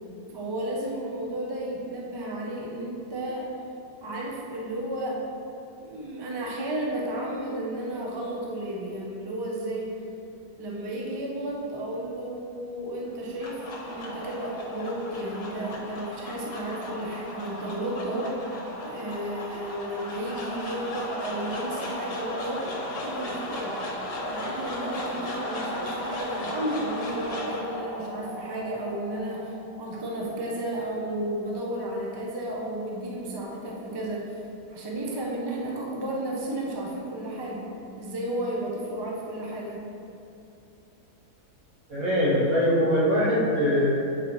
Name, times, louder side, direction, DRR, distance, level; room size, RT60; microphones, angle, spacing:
voice 1, 0.3-3.5 4.0-5.2 5.8-10.0 10.6-18.4 18.8-22.7 23.0-23.8 24.1-34.4 34.7-37.7 38.0-39.9, right 1 dB, 30° right, -3 dB, 0.5 m, -33 dB
sound 1, 13.1-31.4, left 1 dB, 90° left, 1.8 m, -36 dB
voice 2, 41.9-43.9, equal, 60° right, -7 dB, 1.7 m, -22 dB
8.7 x 4.3 x 3.1 m, 2.7 s
omnidirectional pair, 1.7 m